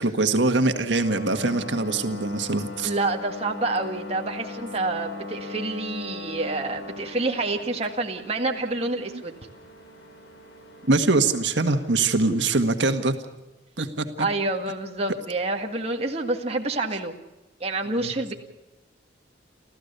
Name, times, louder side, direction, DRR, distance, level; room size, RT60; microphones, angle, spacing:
voice 1, 0.0-2.9 9.1-9.2 10.9-13.1 13.8-14.1 18.0-18.1, right 3 dB, 80° right, 6 dB, 1.7 m, -23 dB
sound 1, 1.0-12.5, left 3 dB, 75° left, 5.3 m, -40 dB
voice 2, 2.8-9.3 14.2-17.2 17.6-18.3, right 2 dB, 35° right, 2 dB, 1.8 m, -28 dB
29.0 x 14.5 x 6.8 m, 1.1 s
head